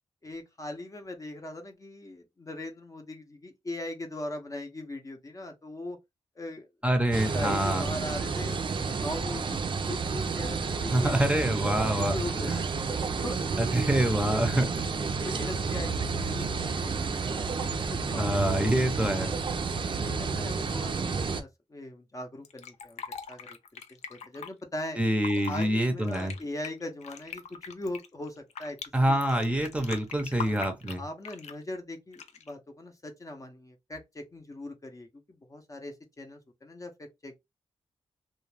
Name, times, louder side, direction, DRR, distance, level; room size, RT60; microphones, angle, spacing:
voice 1, 0.2-6.0 6.4-6.7 7.2-12.6 13.1-13.4 13.6-14.4 15.2-17.5 18.1-18.7 19.9-23.8 24.1-25.0 25.5-28.8 29.1-29.7 30.4-30.6 31.0-37.4, left 1 dB, 30° left, 0.7 m, -40 dB
voice 2, 6.8-7.8 10.9-12.2 12.5-12.7 13.6-14.7 18.2-19.3 25.0-26.3 28.9-31.0, right 1 dB, 10° right, 0.7 m, -26 dB
sound 1, 7.1-21.4, right 4 dB, 45° right, 0.4 m, -30 dB
Fill (with liquid), 22.4-24.5 25.1-25.7 26.0-28.9 29.2-31.6 32.1-32.5, left 7 dB, 80° left, 0.4 m, -41 dB
2.3 x 2.2 x 3.2 m
cardioid pair, 85°, 11 cm